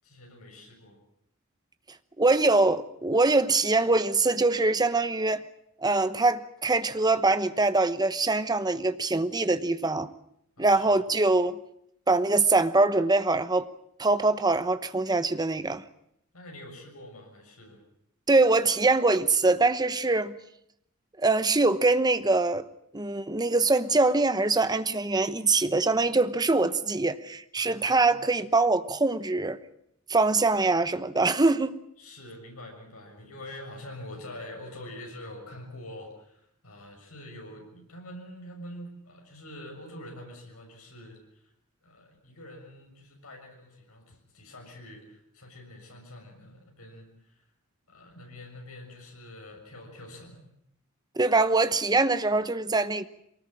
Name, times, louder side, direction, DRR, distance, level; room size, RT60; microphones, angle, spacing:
voice 1, 0.0-1.0 10.6-11.0 16.3-17.8 27.6-28.3 32.0-41.4 41.8-47.4 47.9-50.4, left 1 dB, 85° left, 6.7 m, -45 dB
voice 2, 2.2-5.4 5.8-10.1 10.6-11.6 12.1-13.7 14.0-15.8 18.3-20.4 21.2-22.7 22.9-29.6 30.1-31.8 51.2-53.0, right 3 dB, 20° right, 1.0 m, -23 dB
23.5 x 19.0 x 8.7 m
head